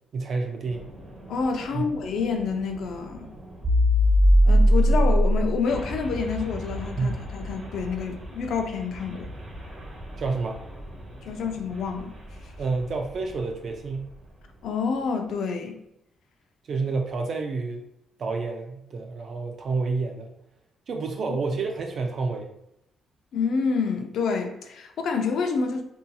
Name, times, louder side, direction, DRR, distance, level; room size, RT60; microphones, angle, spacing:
voice 1, 0.1-0.9 1.7-1.9 7.0-7.1 10.2-10.6 12.6-14.1 16.7-17.9 18.2-20.3 20.9-22.5, right 4 dB, 55° right, 0.3 m, -29 dB
sound 1, 0.7-13.4, equal, 30° right, 1.0 m, -25 dB
voice 2, 1.3-3.3 4.4-9.3 11.3-12.2 14.6-15.8 23.3-25.8, left 5 dB, 70° left, 0.4 m, -28 dB
2.7 x 2.6 x 2.2 m
cardioid pair, 90°, 0 cm